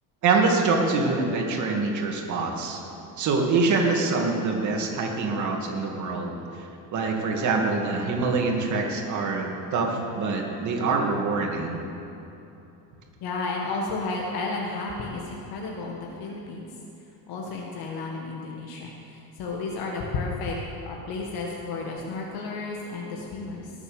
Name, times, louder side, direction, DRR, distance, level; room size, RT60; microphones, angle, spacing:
voice 1, 0.2-2.8 3.2-6.4 6.9-11.8, right 3 dB, 45° right, 1 dB, 2.4 m, -25 dB
voice 2, 13.2-16.7 17.3-20.6 20.9-23.7, left 3 dB, 70° left, -1 dB, 1.8 m, -32 dB
19.0 x 7.3 x 7.1 m, 2.9 s
cardioid pair, 140°, 39 cm